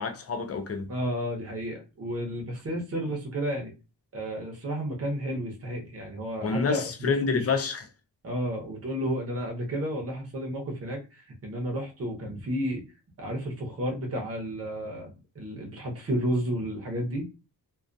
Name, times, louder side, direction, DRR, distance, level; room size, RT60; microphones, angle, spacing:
voice 1, 0.0-0.9 6.4-7.8, left 5 dB, 40° left, 0.4 m, -28 dB
voice 2, 0.9-3.7 4.1-7.5 8.2-12.8 13.2-17.3, equal, 35° right, 0.7 m, -32 dB
2.3 x 2.2 x 2.5 m
wide cardioid pair, 165°, 39 cm